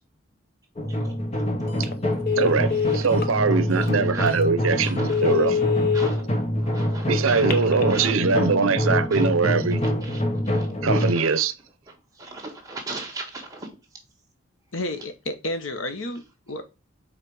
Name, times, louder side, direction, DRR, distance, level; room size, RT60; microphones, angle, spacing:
sound 1, 0.8-11.1, equal, 30° left, 1.1 m, -25 dB
Telephone, 1.7-1.9 2.2-3.3 3.9-4.0 4.4-4.5 5.0-6.1 7.3-7.9, left 6 dB, 50° left, 0.8 m, -24 dB
voice 1, 2.4-5.6 7.1-9.8 10.8-11.5, right 5 dB, 85° right, 0.6 m, -22 dB
voice 2, 4.8-5.2 5.5-5.6 5.9-6.2 6.6-8.2 10.0-10.2 10.5-10.7 11.0-11.4 12.2-13.7, right 2 dB, 15° right, 1.5 m, -38 dB
voice 3, 14.7-16.6, left 1 dB, 75° left, 1.1 m, -31 dB
5.0 x 4.2 x 4.7 m
head